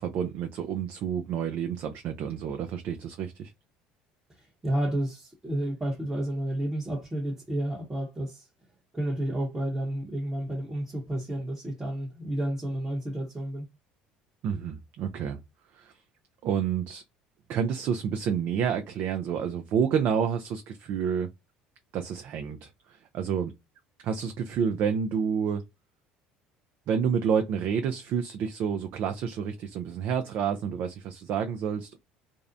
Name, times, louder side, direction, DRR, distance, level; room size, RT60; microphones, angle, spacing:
voice 1, 0.0-3.5 14.4-15.4 15.7-15.9 16.4-17.0 17.5-21.3 21.9-23.5 24.0-25.6 26.9-32.0, right 7 dB, 60° right, 0.4 m, -29 dB
voice 2, 4.3-8.5 8.9-13.7, right 1 dB, 15° right, 0.8 m, -31 dB
2.5 x 2.0 x 2.5 m
supercardioid pair, 80°, 4 cm